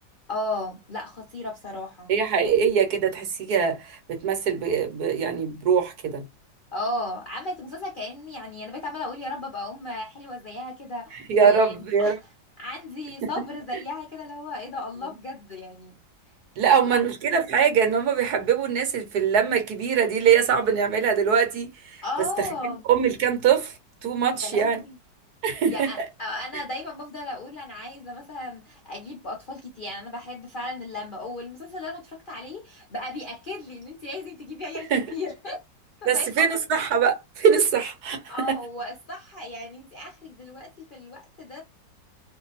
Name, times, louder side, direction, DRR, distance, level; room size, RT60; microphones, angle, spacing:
voice 1, 0.3-2.1 6.7-11.7 12.0-12.1 12.6-16.0 16.6-17.0 22.0-22.8 24.4-25.0 25.7-35.6 36.0-36.5 38.3-41.6, left 2 dB, 55° left, 0.5 m, -35 dB
voice 2, 2.1-6.2 11.3-12.1 13.2-13.3 16.6-22.0 22.4-22.5 22.9-23.8 24.0-24.8 25.4-26.0 34.9-35.0 36.1-38.2 38.5-38.6, right 7 dB, 65° right, 1.3 m, -22 dB
2.7 x 2.6 x 4.0 m
omnidirectional pair, 2.0 m